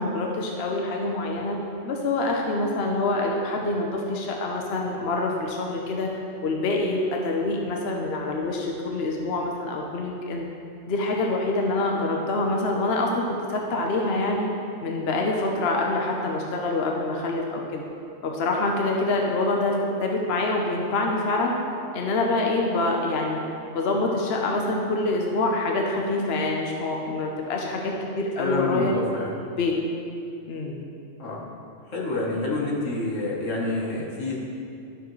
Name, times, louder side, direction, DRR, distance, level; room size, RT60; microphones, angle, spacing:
voice 1, 0.0-10.5 10.9-14.5 14.8-17.8 18.2-21.5 21.9-23.4 23.7-29.0 29.6-29.7 30.5-30.8, left 2 dB, 60° left, 0 dB, 1.0 m, -26 dB
voice 2, 28.4-29.3 31.2-31.5 31.9-34.4, left 2 dB, 80° left, -4 dB, 1.7 m, -28 dB
11.5 x 6.6 x 3.2 m, 2.5 s
omnidirectional pair, 1.3 m